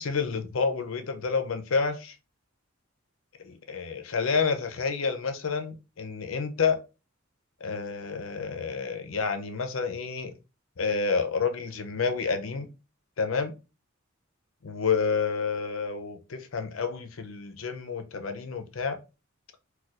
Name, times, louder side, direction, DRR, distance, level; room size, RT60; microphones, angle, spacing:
voice 1, 0.0-2.1 3.4-6.8 7.6-10.3 10.8-12.7 13.2-13.6 14.6-19.0, left 5 dB, 80° left, 0.6 m, -29 dB
4.2 x 2.3 x 2.4 m
head